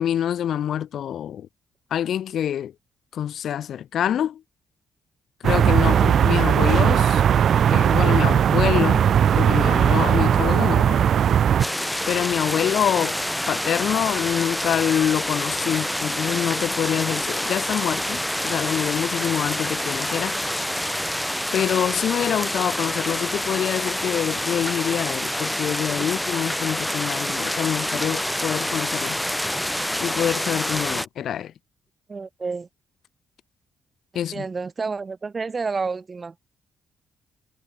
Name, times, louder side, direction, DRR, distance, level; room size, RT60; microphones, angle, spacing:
voice 1, 0.0-1.5 1.9-2.7 3.1-4.4 5.4-7.3 7.7-9.0 9.3-11.1 12.1-13.2 13.5-20.5 21.5-29.2 30.0-31.5 34.1-34.4, left 10 dB, 65° left, 2.4 m, -26 dB
sound 1, 5.4-11.7, right 9 dB, 60° right, 2.4 m, -18 dB
sound 2, 11.6-31.1, left 1 dB, 5° left, 4.7 m, -27 dB
voice 2, 32.1-32.7 34.3-36.4, right 4 dB, 30° right, 5.4 m, -30 dB
cardioid pair, 90°, 0 cm